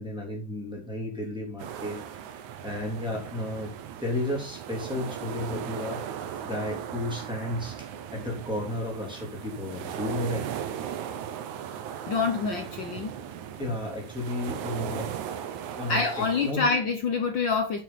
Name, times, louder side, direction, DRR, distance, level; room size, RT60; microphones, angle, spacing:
voice 1, 0.0-2.0 2.6-6.0 6.4-10.5 13.6-15.1 15.7-16.0 16.4-16.6, left 1 dB, ahead, -3 dB, 3.1 m, -33 dB
sound 1, 1.6-16.5, right 9 dB, 85° right, 2.4 m, -37 dB
voice 2, 12.1-13.1 15.9-17.8, left 4 dB, 80° left, 6 dB, 1.0 m, -26 dB
9.7 x 7.7 x 4.2 m, 0.38 s
omnidirectional pair, 3.3 m